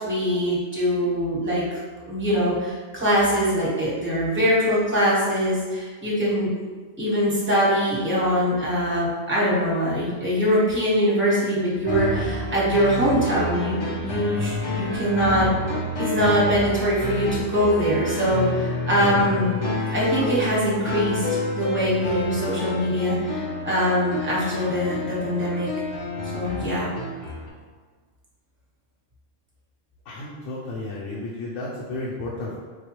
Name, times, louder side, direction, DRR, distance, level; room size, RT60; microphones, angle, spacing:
voice 1, 0.0-6.5 7.0-15.5 16.0-19.5 19.9-25.7 26.3-26.9, equal, 10° right, -7 dB, 1.0 m, -23 dB
sound 1, 11.8-27.5, left 2 dB, 40° left, 0.4 m, -29 dB
voice 2, 30.1-32.6, left 2 dB, 70° left, -4 dB, 0.9 m, -32 dB
4.7 x 2.2 x 3.0 m, 1.5 s
omnidirectional pair, 1.4 m